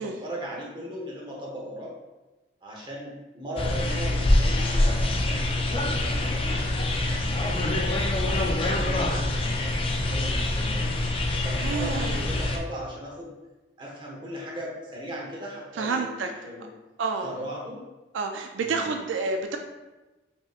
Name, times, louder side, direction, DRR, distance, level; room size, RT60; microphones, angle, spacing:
voice 1, 0.0-1.9 2.6-13.3 13.8-16.7 17.2-17.8 18.6-18.9, equal, 25° right, -3 dB, 0.9 m, -38 dB
sound 1, 3.6-12.6, left 1 dB, 30° left, 0.4 m, -25 dB
voice 2, 11.6-12.3 15.8-16.3 17.0-17.3 18.1-19.6, right 4 dB, 80° right, 4 dB, 0.4 m, -29 dB
5.4 x 2.9 x 2.4 m, 1.1 s
head